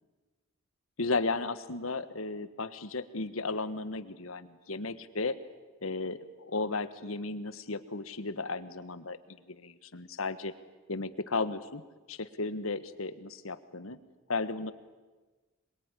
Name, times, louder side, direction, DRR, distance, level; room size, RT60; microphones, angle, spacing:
voice 1, 1.0-5.4 5.8-10.5 10.9-11.8 12.1-14.0 14.3-14.7, left 3 dB, 80° left, 12 dB, 1.5 m, -34 dB
26.0 x 22.0 x 9.9 m, 1.3 s
head